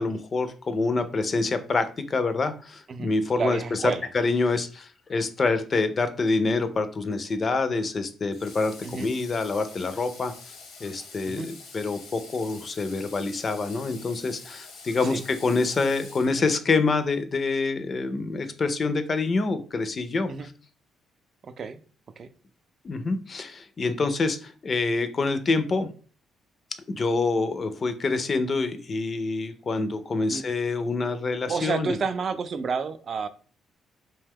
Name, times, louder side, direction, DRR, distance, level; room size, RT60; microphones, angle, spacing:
voice 1, 0.0-3.8 4.1-20.3 22.8-25.9 26.9-32.0, left 3 dB, 40° left, 10 dB, 0.4 m, -26 dB
voice 2, 3.4-4.1 8.8-9.1 11.3-11.5 15.0-15.2 20.3-20.5 21.4-21.8 22.2-22.3 30.3-30.4 31.5-33.3, right 5 dB, 50° right, 11 dB, 0.3 m, -30 dB
Water / Water tap faucet, 8.3-16.8, left 4 dB, 85° left, 0.9 m, -46 dB
2.7 x 2.2 x 3.4 m, 0.39 s
cardioid pair, 90°, 0 cm